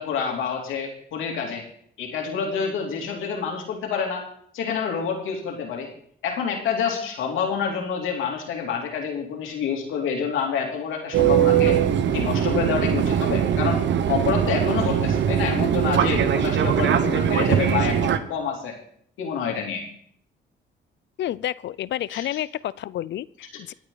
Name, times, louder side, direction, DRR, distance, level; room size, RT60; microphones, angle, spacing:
voice 1, 0.0-1.6 2.0-4.2 4.5-5.9 6.2-11.8 12.1-18.8 19.2-19.8 22.1-22.2, left 6 dB, 85° left, 1 dB, 3.1 m, -27 dB
Fixed-wing aircraft airplane, 11.1-18.2, right 9 dB, 65° right, 1.0 m, -21 dB
voice 2, 21.2-23.7, left 12 dB, 65° left, 20 dB, 0.5 m, -30 dB
26.0 x 9.0 x 4.0 m, 0.65 s
cardioid pair, 90°, 20 cm